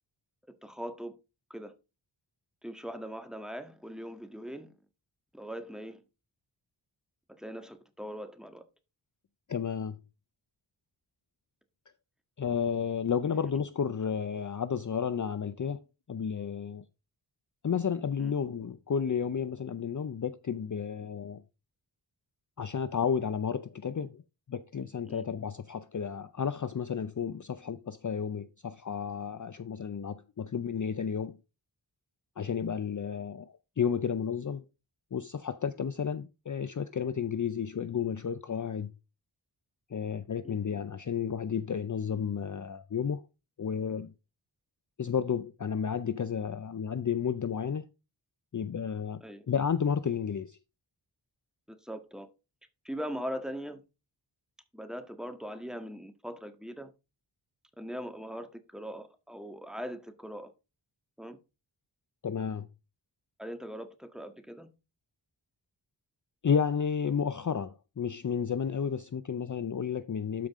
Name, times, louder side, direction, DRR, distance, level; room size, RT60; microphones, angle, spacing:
voice 1, 0.5-1.2 1.5-1.7 2.6-4.7 5.3-6.0 7.4-8.6 18.2-18.3 25.0-25.2 40.4-40.6 49.2-49.5 51.7-52.3 52.8-53.8 54.7-56.9 57.8-60.5 61.2-61.4 63.4-64.7, equal, ahead, 1.6 m, -40 dB
voice 2, 9.5-10.0 12.4-15.8 16.1-16.8 17.6-21.4 22.6-24.2 24.5-31.4 32.4-34.6 35.1-38.9 39.9-43.2 43.6-44.1 45.0-47.8 48.5-50.6 62.2-62.7 66.4-70.5, left 7 dB, 40° left, 0.6 m, -32 dB
12.5 x 5.3 x 3.7 m
wide cardioid pair, 60°, 47 cm